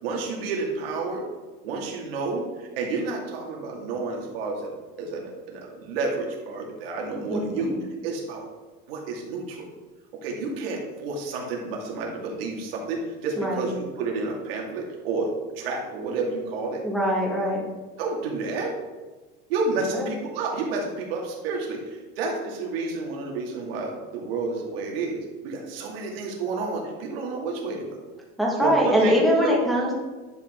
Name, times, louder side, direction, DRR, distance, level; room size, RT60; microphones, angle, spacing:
voice 1, 0.0-1.2 1.6-4.7 5.0-7.7 8.0-8.4 8.9-9.7 10.2-15.3 15.6-16.8 18.0-18.7 19.5-28.0 28.6-29.1 29.4-29.5, right 3 dB, 85° right, -1 dB, 2.3 m, -30 dB
voice 2, 7.3-7.6 13.4-13.7 16.8-17.6 19.9-20.1 28.4-29.9, equal, ahead, -4 dB, 1.8 m, -22 dB
10.5 x 5.4 x 3.7 m, 1.3 s
supercardioid pair, 155°, 29 cm